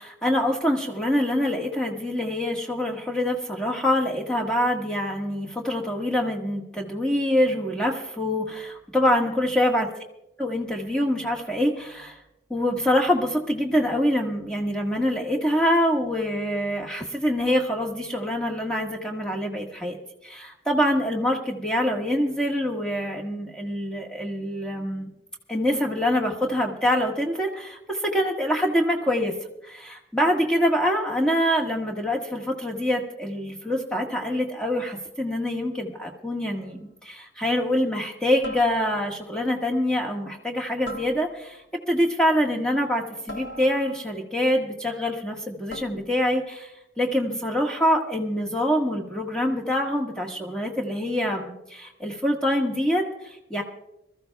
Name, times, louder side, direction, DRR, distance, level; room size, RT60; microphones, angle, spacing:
voice 1, 0.0-9.9 10.4-12.2 12.5-20.0 20.2-25.1 25.5-29.3 29.6-53.6, equal, 5° left, 0 dB, 1.5 m, -25 dB
sound 1, 36.6-37.0 38.4-39.2 40.9-41.7 43.3-44.2 45.7-46.3, left 1 dB, 85° left, 1.3 m, -41 dB
25.5 x 14.0 x 2.3 m, 0.87 s
head